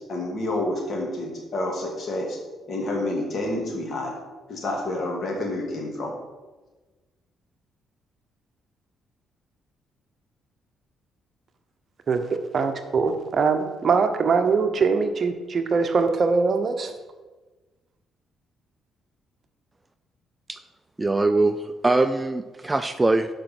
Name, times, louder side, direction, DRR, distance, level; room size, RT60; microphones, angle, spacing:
voice 1, 0.1-2.4 2.7-4.1 4.5-6.1, left 1 dB, 50° left, 0 dB, 2.3 m, -28 dB
voice 2, 12.5-16.9, right 4 dB, 50° right, 7 dB, 0.8 m, -22 dB
voice 3, 21.0-23.3, right 2 dB, 15° right, 9 dB, 0.4 m, -22 dB
6.6 x 5.2 x 6.0 m, 1.2 s
cardioid pair, 90°, 0 cm